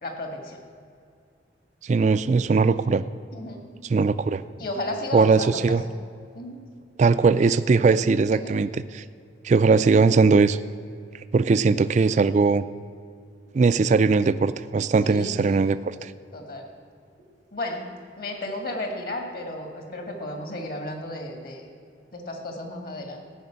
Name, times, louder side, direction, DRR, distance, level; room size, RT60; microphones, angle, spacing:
voice 1, 0.0-0.6 3.3-3.6 4.6-5.8 6.3-6.6 8.2-8.5 15.0-15.6 16.3-16.7 17.5-17.9 18.2-21.6 22.1-23.2, left 1 dB, 50° left, 3 dB, 2.0 m, -33 dB
voice 2, 1.8-3.0 3.9-4.4 5.1-5.8 7.0-9.0 9.4-10.6 11.3-12.6 13.5-16.1, right 4 dB, 40° right, 13 dB, 0.3 m, -20 dB
15.0 x 6.0 x 8.9 m, 2.3 s
head